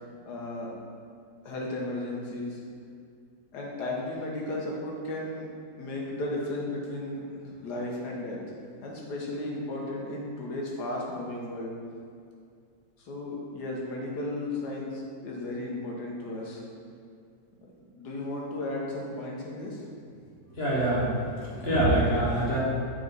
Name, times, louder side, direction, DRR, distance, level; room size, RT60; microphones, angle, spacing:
voice 1, 0.3-0.8 1.4-2.6 3.5-5.5 5.8-8.4 8.8-11.7 13.0-16.6 18.0-19.8 21.4-21.5, left 1 dB, 85° left, -3 dB, 1.6 m, -34 dB
voice 2, 20.5-22.6, right 1 dB, 40° left, -7 dB, 1.5 m, -25 dB
6.6 x 4.0 x 3.9 m, 2.2 s
omnidirectional pair, 1.7 m